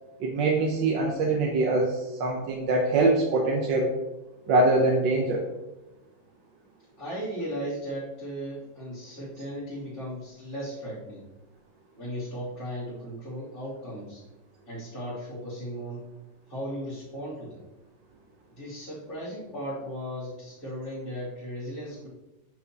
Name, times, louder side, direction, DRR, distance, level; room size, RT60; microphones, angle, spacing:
voice 1, 0.2-3.9 4.5-5.4, right 2 dB, 60° right, -1 dB, 1.4 m, -23 dB
voice 2, 7.0-11.2 11.9-14.2 14.7-16.0 16.5-17.6 18.6-22.1, equal, 40° left, -14 dB, 3.2 m, -36 dB
9.2 x 6.2 x 2.9 m, 1.0 s
omnidirectional pair, 2.4 m